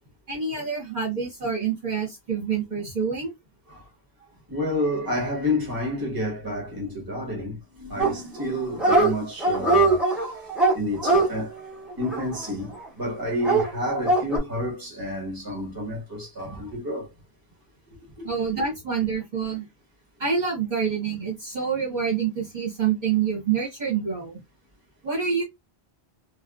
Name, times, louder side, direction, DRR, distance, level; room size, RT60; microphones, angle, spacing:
voice 1, 0.3-3.3 18.2-19.6 20.2-24.4 25.0-25.4, right 6 dB, 45° right, 1.3 m, -27 dB
voice 2, 4.5-10.3 10.7-11.6 12.0-17.1 18.2-18.3, left 1 dB, 20° right, 1.2 m, -29 dB
Dog, 8.0-8.5 8.7-9.1 9.4-12.8 13.4-14.4, right 2 dB, ahead, 0.8 m, -22 dB
3.3 x 2.0 x 2.3 m
omnidirectional pair, 1.1 m